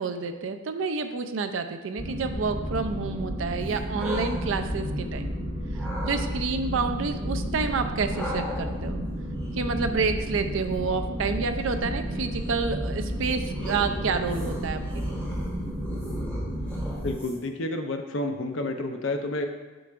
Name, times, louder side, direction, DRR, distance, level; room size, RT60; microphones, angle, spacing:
voice 1, 0.0-5.3 6.1-9.0 9.6-15.2, right 4 dB, 65° right, 8 dB, 0.4 m, -29 dB
sound 1, 2.0-17.1, equal, 40° right, 1.9 m, -32 dB
sound 2, 3.6-5.3 5.7-6.3 8.1-17.6, equal, 10° left, 1.3 m, -40 dB
voice 2, 17.0-19.5, left 2 dB, 60° left, 5 dB, 0.6 m, -30 dB
7.7 x 5.7 x 2.5 m, 1.3 s
head